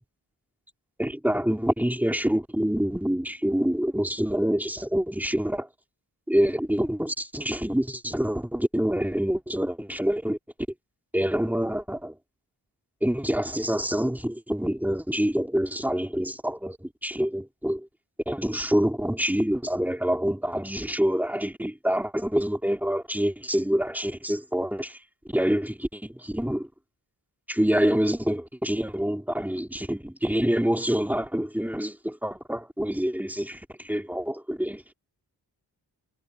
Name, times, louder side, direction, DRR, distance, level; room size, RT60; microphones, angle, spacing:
voice 1, 1.0-5.7 6.3-10.4 11.1-12.1 13.0-17.9 18.3-25.0 25.3-26.7 27.5-34.8, equal, 5° right, 2.6 m, -26 dB
wide cardioid pair, 80°, 39 cm